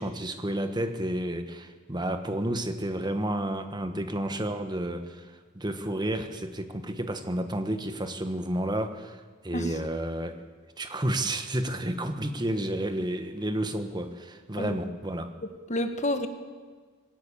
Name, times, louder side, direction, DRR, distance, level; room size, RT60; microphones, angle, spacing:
voice 1, 0.0-10.4 10.8-15.3, right 1 dB, 20° right, 7 dB, 1.4 m, -31 dB
voice 2, 15.4-16.3, left 1 dB, 35° left, 8 dB, 1.5 m, -30 dB
20.0 x 17.0 x 8.6 m, 1.5 s
head